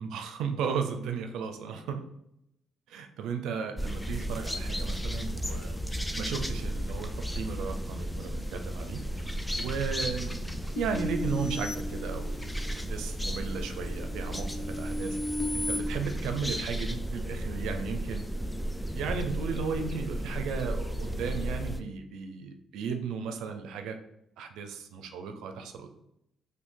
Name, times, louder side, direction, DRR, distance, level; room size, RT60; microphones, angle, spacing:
voice 1, 0.0-2.0 2.9-5.8 6.2-9.2 9.6-15.2 15.5-18.2 18.9-24.0 24.4-25.9, right 6 dB, 85° right, 6 dB, 0.5 m, -35 dB
sound 1, 3.8-21.8, equal, 5° left, 0.3 m, -34 dB
sound 2, 10.8-12.7 13.2-15.8, left 1 dB, 75° left, 0.7 m, -35 dB
2.6 x 2.6 x 3.7 m, 0.80 s
cardioid pair, 90°, 0 cm